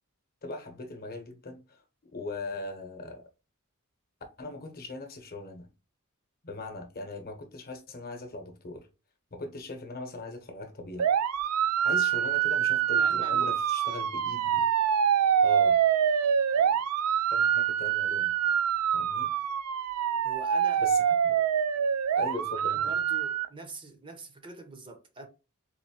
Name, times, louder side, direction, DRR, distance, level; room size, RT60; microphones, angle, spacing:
voice 1, 0.4-1.8 2.1-3.2 4.4-5.7 6.4-8.9 9.3-11.1 11.8-14.6 15.4-15.8 17.3-18.3 18.9-19.3 20.8-21.4 22.2-22.9, left 2 dB, 45° left, 0.9 m, -40 dB
sound 1, 11.0-23.5, right 8 dB, 75° right, 0.4 m, -25 dB
voice 2, 13.0-13.6 16.5-16.8 20.2-20.8 22.1-25.3, right 2 dB, 20° right, 0.6 m, -45 dB
4.1 x 2.6 x 2.8 m
head